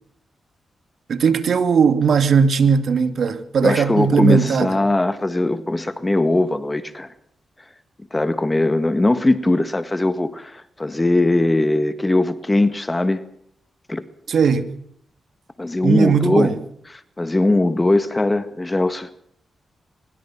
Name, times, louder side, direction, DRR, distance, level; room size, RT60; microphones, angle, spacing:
voice 1, 1.1-4.8 14.3-14.7 15.8-16.6, right 6 dB, 70° right, 2.6 m, -18 dB
voice 2, 3.6-7.1 8.1-13.2 13.9-14.0 15.6-16.5 16.9-19.1, left 2 dB, 20° left, 1.8 m, -20 dB
23.5 x 22.5 x 6.0 m
cardioid pair, 80°, 0 cm